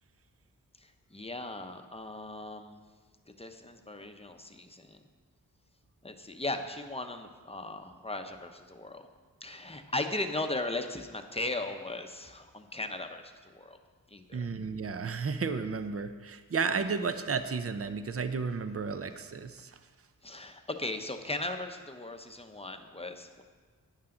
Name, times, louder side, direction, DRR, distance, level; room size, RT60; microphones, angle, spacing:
voice 1, 1.1-2.8 3.4-5.0 6.0-9.1 9.4-13.8 14.1-14.5 20.2-23.4, left 2 dB, 15° left, 6 dB, 0.8 m, -37 dB
voice 2, 14.3-19.7, right 5 dB, 40° right, 10 dB, 0.6 m, -33 dB
11.5 x 9.7 x 3.8 m, 1.5 s
wide cardioid pair, 100°, 35 cm